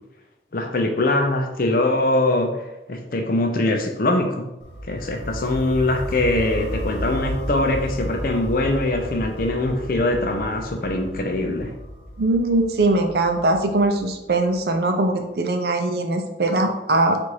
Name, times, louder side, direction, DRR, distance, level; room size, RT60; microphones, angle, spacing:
voice 1, 0.5-2.5 2.9-4.5 4.9-11.7, left 2 dB, 50° left, 4 dB, 0.6 m, -22 dB
sound 1, 4.6-14.5, equal, 85° left, 1.0 m, -33 dB
voice 2, 12.2-17.2, right 2 dB, 60° right, 5 dB, 0.5 m, -21 dB
4.3 x 2.6 x 4.7 m, 0.93 s
head